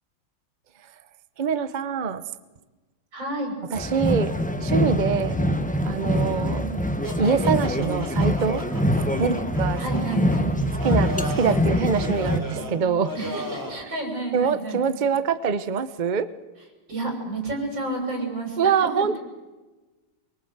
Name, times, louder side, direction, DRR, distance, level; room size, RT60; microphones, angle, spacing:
voice 1, 1.4-2.2 3.7-4.3 4.6-5.4 5.8-6.7 7.2-8.6 9.2-9.8 10.8-13.1 14.3-16.3 18.6-19.2, right 6 dB, 80° right, 12 dB, 0.4 m, -24 dB
voice 2, 3.1-3.5 5.3-5.7 6.4-6.9 9.2-9.4 9.8-10.5 13.1-14.8 16.9-19.2, right 2 dB, 55° right, 2 dB, 7.0 m, -31 dB
sound 1, 3.7-12.4, equal, 15° left, 0.3 m, -24 dB
sound 2, 7.0-13.8, equal, 10° right, 3.0 m, -36 dB
24.5 x 23.0 x 8.0 m, 1.2 s
omnidirectional pair, 2.3 m